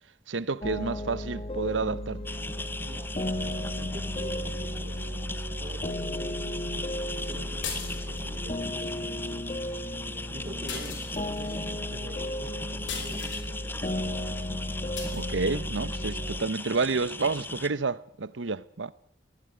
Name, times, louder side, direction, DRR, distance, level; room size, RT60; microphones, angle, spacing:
voice 1, 0.3-2.2 15.1-18.9, right 4 dB, 85° right, 0.9 m, -30 dB
sound 1, 0.6-16.4, left 1 dB, 30° left, 1.5 m, -34 dB
sound 2, 2.2-17.7, left 2 dB, 10° left, 1.0 m, -38 dB
voice 2, 2.8-3.1 3.7-5.2 5.6-6.7 7.1-9.5 10.3-11.1 11.3-14.0, right 1 dB, 40° right, 3.2 m, -46 dB
sound 3, 7.6-8.4 10.7-11.5 12.9-13.5 15.0-15.2, left 6 dB, 85° left, 5.3 m, -37 dB
20.5 x 16.5 x 9.8 m
head